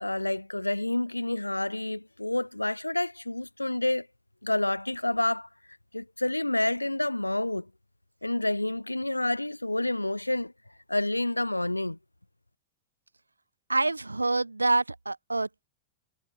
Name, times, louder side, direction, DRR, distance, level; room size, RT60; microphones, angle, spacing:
voice 1, 0.0-4.1 4.4-5.5 5.9-7.7 8.2-10.5 10.9-12.0, left 1 dB, 85° left, 1.0 m, -28 dB
voice 2, 13.7-15.7, right 2 dB, 80° right, 0.3 m, -27 dB
figure-of-eight pair, 90°, 0 cm